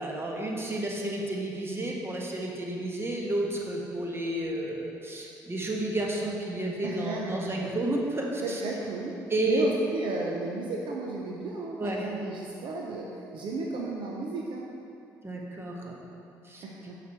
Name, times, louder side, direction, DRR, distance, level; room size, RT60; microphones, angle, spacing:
voice 1, 0.0-8.6 9.3-9.7 11.8-12.1 15.2-16.0 16.4-16.6, right 1 dB, 25° right, -1 dB, 1.4 m, -31 dB
voice 2, 6.8-7.7 8.4-9.1 9.5-14.6 16.6-17.0, right 3 dB, 60° right, -2 dB, 0.7 m, -34 dB
5.9 x 5.8 x 4.5 m, 2.7 s
hypercardioid pair, 55°, 9 cm